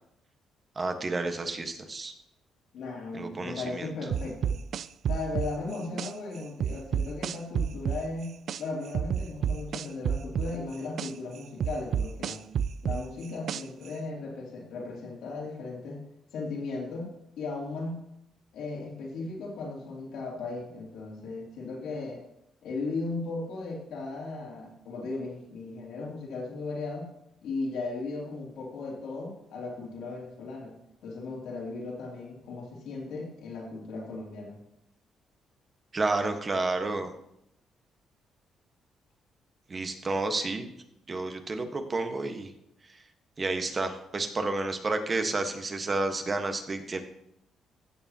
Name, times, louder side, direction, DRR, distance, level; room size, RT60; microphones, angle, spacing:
voice 1, 0.7-2.1 3.1-3.9 35.9-37.1 39.7-40.7 41.1-42.5 42.8-43.0 43.4-47.0, right 3 dB, 35° right, 6 dB, 1.3 m, -30 dB
voice 2, 2.7-4.6 5.1-12.5 12.8-16.0 16.3-18.0 18.5-22.2 22.6-27.1 27.4-30.7 31.0-34.6, left 3 dB, 80° left, -2 dB, 3.0 m, -36 dB
sound 1, 4.1-6.1 6.6-8.6 8.9-11.1 11.6-13.9, right 8 dB, 65° right, 0.4 m, -29 dB
15.5 x 6.9 x 2.9 m, 0.79 s
cardioid pair, 90°, 0 cm